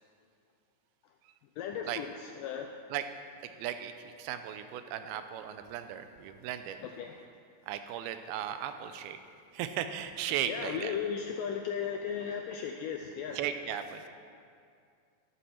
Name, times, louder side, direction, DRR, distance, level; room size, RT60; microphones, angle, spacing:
voice 1, 1.6-2.8 6.8-7.3 10.5-13.4, left 7 dB, 85° left, 4 dB, 1.9 m, -36 dB
voice 2, 3.6-6.8 7.7-9.2 9.5-10.9 13.4-14.0, right 10 dB, 85° right, 9 dB, 2.4 m, -36 dB
12.5 x 11.5 x 4.3 m, 2.3 s
omnidirectional pair, 4.4 m